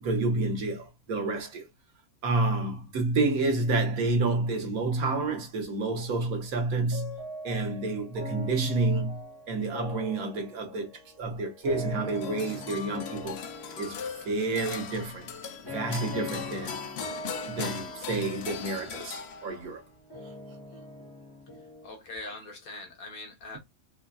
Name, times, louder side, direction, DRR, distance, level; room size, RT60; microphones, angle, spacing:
voice 1, 0.0-1.6 2.2-9.2 9.5-10.9 11.2-13.4 13.8-14.0 14.2-15.3 15.7-16.8 17.5-19.8, right 3 dB, 85° right, 1.4 m, -29 dB
sound 1, 6.9-21.9, left 2 dB, 20° left, 1.0 m, -42 dB
sound 2, 12.1-19.8, left 7 dB, 65° left, 0.7 m, -39 dB
voice 2, 21.8-23.6, left 2 dB, 85° left, 1.6 m, -42 dB
4.4 x 2.4 x 2.2 m
omnidirectional pair, 1.5 m